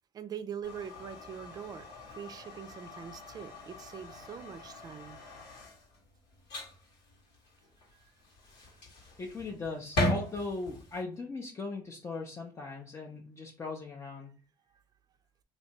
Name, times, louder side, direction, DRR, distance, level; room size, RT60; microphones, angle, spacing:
voice 1, 0.1-5.2 8.6-8.7, right 8 dB, 40° right, 11 dB, 0.4 m, -43 dB
sound 1, 0.6-11.0, left 1 dB, 80° left, 1.5 m, -39 dB
voice 2, 9.2-14.3, left 3 dB, 30° left, 0 dB, 0.6 m, -39 dB
3.2 x 2.7 x 2.9 m, 0.38 s
cardioid pair, 95°, 10 cm